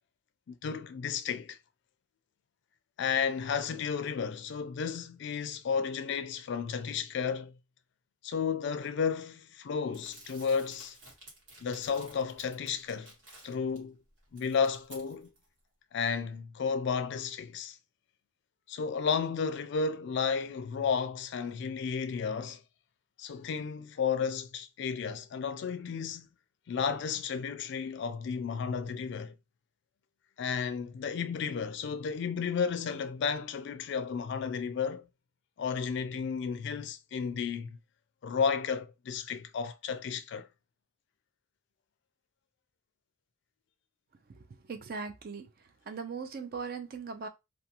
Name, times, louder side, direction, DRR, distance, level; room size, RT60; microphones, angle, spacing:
voice 1, 0.5-1.6 3.0-7.5 8.2-11.0 11.6-13.1 13.4-14.0 14.3-15.3 15.9-17.8 18.7-22.6 23.2-26.3 26.7-29.3 30.4-35.1 35.6-37.8 38.2-40.5, left 6 dB, 60° left, 0.3 m, -33 dB
Crumpling crinkling, 9.9-13.8 14.2-15.4, right 2 dB, 65° right, 1.3 m, -54 dB
voice 2, 44.7-45.4 45.9-47.3, right 5 dB, 50° right, 0.4 m, -39 dB
2.4 x 2.3 x 2.8 m
head